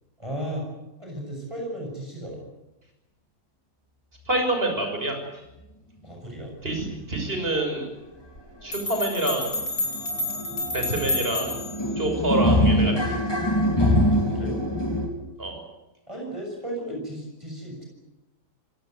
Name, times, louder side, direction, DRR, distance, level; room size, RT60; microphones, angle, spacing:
voice 1, 0.2-0.7 1.0-2.4 6.0-6.5 14.1-14.6 16.1-17.9, right 1 dB, 20° right, 0 dB, 6.8 m, -35 dB
voice 2, 4.3-5.2 6.6-7.9 8.6-9.5 10.7-11.6 12.0-13.1 15.4-15.6, right 1 dB, 35° right, 4 dB, 6.7 m, -26 dB
sound 1, 8.2-8.3 8.6-8.8 9.0-15.1, left 1 dB, 15° left, 3.9 m, -24 dB
sound 2, 8.4-8.5 8.7-11.9, left 2 dB, 75° left, 6.3 m, -30 dB
27.0 x 18.0 x 9.4 m, 0.97 s
omnidirectional pair, 1.7 m